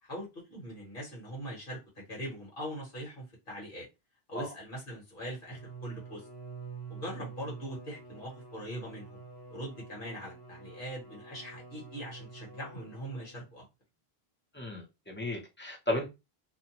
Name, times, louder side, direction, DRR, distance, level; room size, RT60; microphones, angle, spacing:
voice 1, 0.0-3.9 4.3-6.3 6.9-9.2 9.5-13.6, equal, 55° left, 1.4 m, -42 dB
Bowed string instrument, 5.3-13.6, right 4 dB, 80° left, 1.3 m, -47 dB
voice 2, 14.5-16.1, left 1 dB, 10° left, 0.7 m, -34 dB
2.7 x 2.2 x 2.9 m
omnidirectional pair, 1.1 m